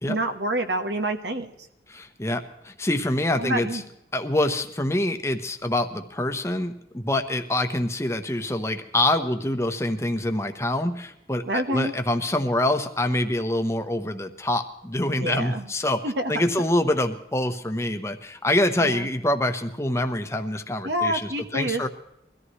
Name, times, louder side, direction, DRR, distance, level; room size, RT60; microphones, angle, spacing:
voice 1, 0.1-1.5 3.4-3.8 11.5-11.9 15.2-15.7 16.0-16.4 18.8-19.1 20.8-21.9, right 1 dB, 85° right, 7 dB, 1.4 m, -27 dB
voice 2, 1.9-3.8 4.1-16.0 16.3-21.9, left 1 dB, 15° left, 7 dB, 0.9 m, -25 dB
22.5 x 14.0 x 3.2 m, 0.85 s
head